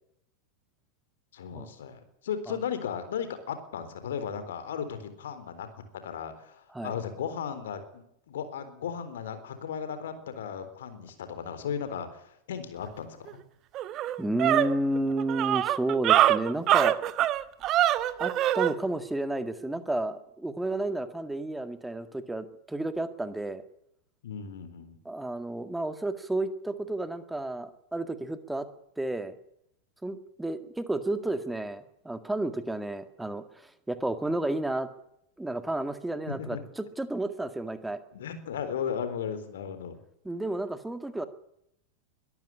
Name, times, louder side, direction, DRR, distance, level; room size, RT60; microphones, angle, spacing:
voice 1, 1.3-13.4 24.2-25.0 36.3-36.6 38.1-40.0, left 7 dB, 60° left, 11 dB, 3.9 m, -36 dB
sound 1, 13.3-13.4 13.7-18.7, right 13 dB, 35° right, 1.2 m, -24 dB
voice 2, 14.2-17.0 18.2-23.6 25.1-28.7 29.0-29.4 30.0-34.9 35.4-38.0 40.2-41.3, right 2 dB, 5° right, 11 dB, 1.9 m, -31 dB
22.5 x 14.0 x 9.8 m, 0.77 s
figure-of-eight pair, 90°, 0 cm